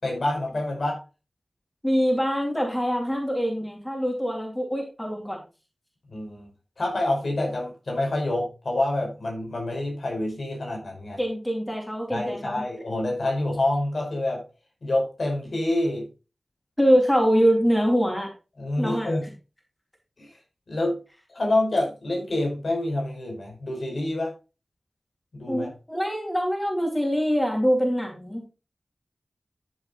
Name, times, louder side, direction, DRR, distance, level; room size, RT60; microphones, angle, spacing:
voice 1, 0.0-1.0 6.1-6.5 6.8-11.2 12.1-14.4 14.8-16.1 18.6-19.3 20.2-20.3 20.7-21.0 21.3-24.3 25.3-25.7, left 1 dB, 70° left, 1 dB, 5.3 m, -27 dB
voice 2, 1.8-5.4 11.2-12.6 16.8-18.3 18.8-19.1 25.5-28.5, equal, 10° left, 1 dB, 3.7 m, -24 dB
13.0 x 7.2 x 2.6 m, 0.31 s
wide cardioid pair, 60°, 0 cm